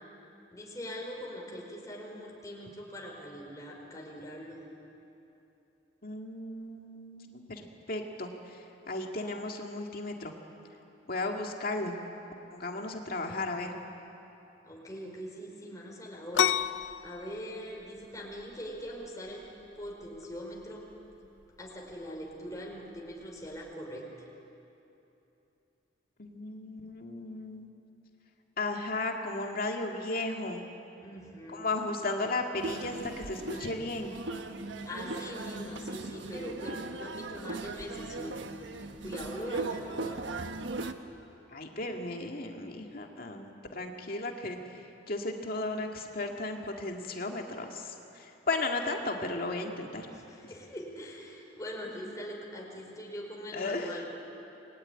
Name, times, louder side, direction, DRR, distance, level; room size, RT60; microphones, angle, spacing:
voice 1, 0.5-4.6 14.6-19.4 19.7-20.9 21.6-24.1 31.0-31.6 34.8-38.5 39.0-40.2 50.1-54.2, equal, 20° left, -2 dB, 5.0 m, -42 dB
voice 2, 6.0-10.3 11.1-12.0 12.5-13.8 26.2-27.7 28.6-30.6 31.5-34.1 41.5-44.8 45.1-50.1 53.5-54.0, left 2 dB, 50° left, 2 dB, 2.2 m, -35 dB
sound 1, 16.3-23.7, left 9 dB, 90° left, 0.6 m, -35 dB
sound 2, 32.6-40.9, right 2 dB, 85° right, 1.3 m, -39 dB
28.0 x 21.5 x 9.9 m, 2.9 s
head